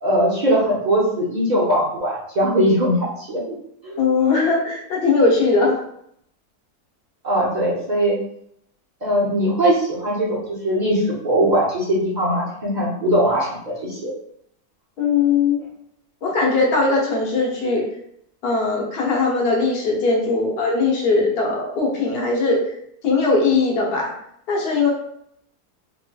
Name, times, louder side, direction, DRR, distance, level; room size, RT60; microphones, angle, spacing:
voice 1, 0.0-3.5 3.8-4.0 7.2-8.2 9.0-14.1, equal, 60° right, -6 dB, 0.4 m, -20 dB
voice 2, 4.0-5.8 15.0-15.6 16.2-17.9 18.4-22.7 23.0-24.1 24.5-24.9, left 3 dB, 50° left, -2 dB, 0.8 m, -19 dB
3.0 x 2.9 x 2.2 m, 0.72 s
omnidirectional pair, 1.7 m